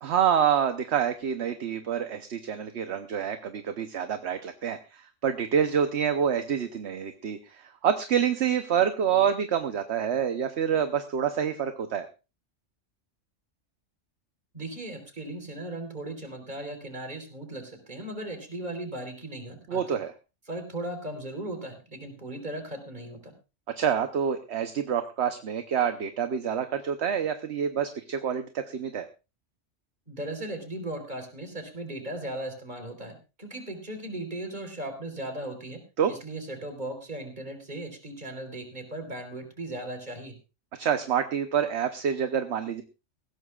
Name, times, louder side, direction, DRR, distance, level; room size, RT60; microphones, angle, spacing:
voice 1, 0.0-12.1 19.7-20.1 23.8-29.1 36.0-36.1 40.8-42.8, right 8 dB, 65° right, 8 dB, 1.1 m, -27 dB
voice 2, 14.5-19.8 20.5-23.3 30.1-35.8 36.1-40.4, right 1 dB, 35° right, 5 dB, 3.9 m, -37 dB
20.0 x 16.0 x 2.4 m, 0.30 s
omnidirectional pair, 1.3 m